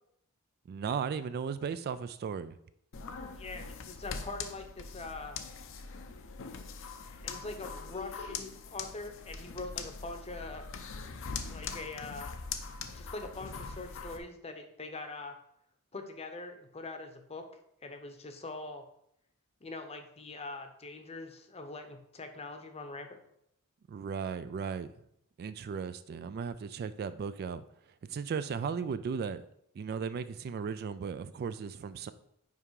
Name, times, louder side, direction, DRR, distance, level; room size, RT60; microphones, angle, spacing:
voice 1, 0.7-2.6 23.9-24.9 25.4-27.6 28.1-29.4 29.7-32.1, right 6 dB, 45° right, 13 dB, 0.3 m, -36 dB
sound 1, 2.9-14.2, left 5 dB, 60° left, 0.6 m, -42 dB
voice 2, 3.3-5.4 7.2-10.7 11.5-12.4 12.9-15.4 15.9-17.5 17.8-18.8 19.6-23.1, left 3 dB, 30° left, 6 dB, 0.8 m, -43 dB
5.6 x 4.9 x 4.7 m, 0.74 s
head